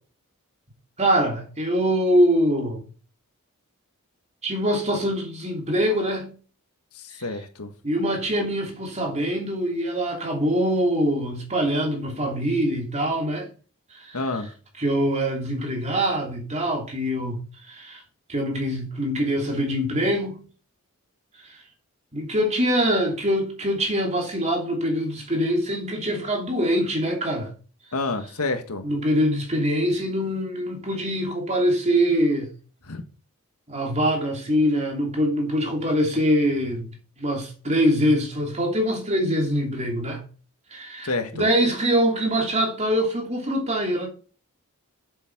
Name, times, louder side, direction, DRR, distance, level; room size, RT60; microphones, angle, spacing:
voice 1, 1.0-2.8 4.4-6.4 7.8-13.5 13.9-14.2 14.8-17.4 17.6-18.0 18.3-20.4 21.4-21.6 22.1-27.5 28.8-32.5 33.7-36.9 37.2-40.2 40.7-44.1, equal, 30° right, 2.9 m, -24 dB
voice 2, 6.9-7.7 14.1-14.5 27.9-28.9 32.8-33.0 41.0-41.5, left 3 dB, 80° left, 1.6 m, -29 dB
8.4 x 7.2 x 5.9 m
head